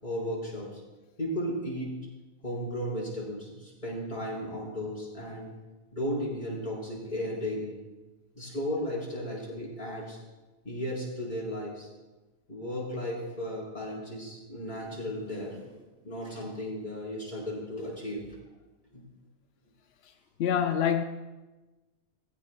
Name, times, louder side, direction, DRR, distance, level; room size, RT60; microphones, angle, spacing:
voice 1, 0.0-0.8 1.2-1.9 2.4-5.5 5.9-7.7 8.3-10.2 10.6-11.9 12.5-15.7 16.0-18.3 18.9-19.1, equal, 30° left, 5.3 m, -35 dB
voice 2, 20.4-21.0, left 8 dB, 60° left, 0.7 m, -25 dB
19.0 x 15.0 x 2.3 m
omnidirectional pair, 1.5 m